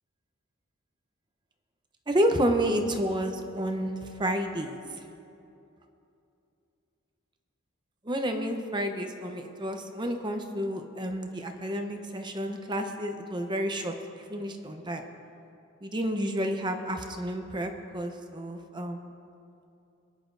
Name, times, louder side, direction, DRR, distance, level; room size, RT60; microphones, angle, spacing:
voice 1, 2.1-4.8 8.0-15.0 15.8-19.0, equal, 20° right, 5 dB, 0.7 m, -30 dB
24.5 x 10.5 x 2.6 m, 2.7 s
head